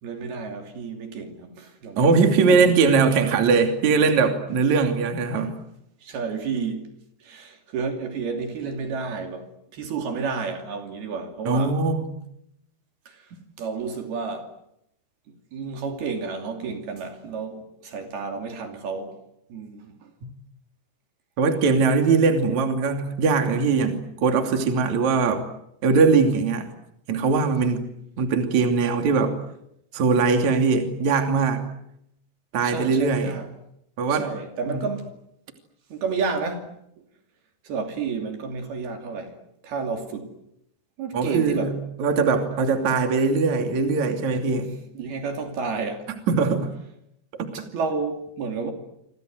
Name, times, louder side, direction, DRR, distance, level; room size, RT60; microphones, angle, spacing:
voice 1, 0.0-2.6 5.3-5.5 6.0-6.8 7.2-11.8 13.1-13.3 13.6-14.5 15.5-19.2 19.5-20.1 32.6-33.5 34.1-35.1 35.9-36.7 37.6-39.4 39.6-40.3 41.0-41.8 44.5-46.1 47.5-48.7, right 4 dB, 60° right, 4.6 m, -31 dB
voice 2, 2.0-5.5 11.5-12.1 21.4-25.4 25.8-26.7 27.1-27.8 28.2-29.3 29.9-31.6 32.5-33.3 34.0-34.3 34.7-34.8 41.1-41.7 42.0-44.7 46.3-46.7 47.4-47.5, right 4 dB, 45° right, 3.8 m, -21 dB
29.0 x 26.0 x 8.0 m
omnidirectional pair, 5.1 m